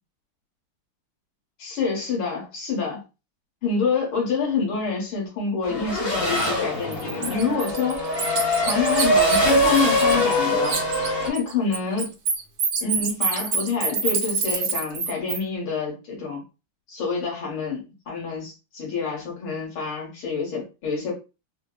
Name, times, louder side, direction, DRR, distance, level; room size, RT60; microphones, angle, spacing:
voice 1, 1.6-3.0 3.6-8.1 8.6-10.8 11.3-12.1 12.8-16.4 16.9-21.1, left 5 dB, 70° left, -2 dB, 2.0 m, -27 dB
Race car auto racing / Accelerating revving vroom, 5.6-11.3, equal, 45° left, 0.8 m, -23 dB
Bird, 6.4-6.5 6.9-10.4 10.6-15.4, right 5 dB, 80° right, 0.8 m, -26 dB
4.1 x 2.0 x 2.3 m, 0.29 s
omnidirectional pair, 2.4 m